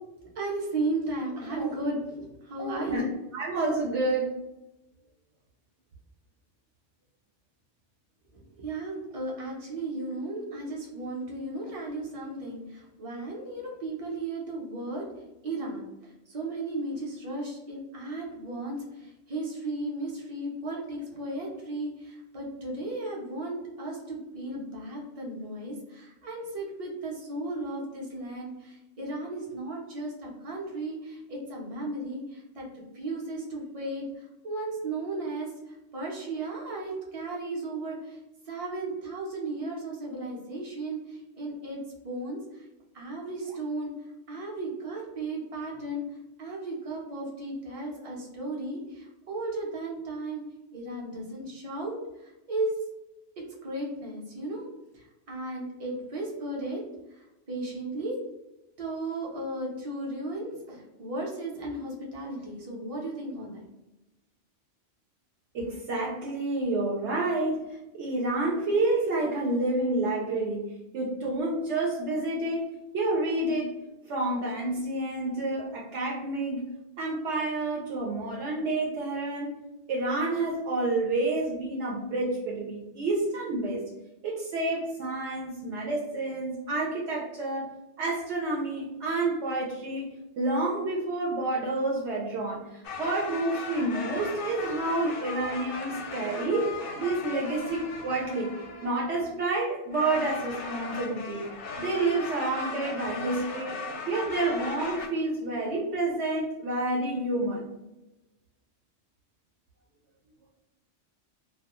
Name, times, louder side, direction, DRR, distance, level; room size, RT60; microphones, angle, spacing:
voice 1, 0.4-3.1 8.3-15.0 15.4-15.9 16.3-32.7 32.9-34.0 34.4-35.5 35.9-38.2 38.5-41.8 42.0-42.6 42.9-43.9 44.3-46.0 46.4-50.4 50.7-52.0 52.2-52.7 53.6-54.7 54.9-56.8 57.5-58.2 58.8-63.6, right 2 dB, 40° right, -2 dB, 0.6 m, -35 dB
voice 2, 3.3-4.3 65.5-67.6 67.9-70.7 70.9-72.7 72.9-73.7 74.1-76.7 77.0-79.5 79.9-83.8 84.2-87.7 88.0-90.1 90.4-92.6 93.0-96.7 97.0-98.5 98.8-101.4 101.8-103.8 104.1-107.7, right 2 dB, 70° right, -3 dB, 0.8 m, -29 dB
sound 1, 92.8-99.3 99.9-105.1, left 4 dB, 60° left, 0.6 m, -38 dB
2.3 x 2.2 x 2.9 m, 0.96 s
omnidirectional pair, 1.3 m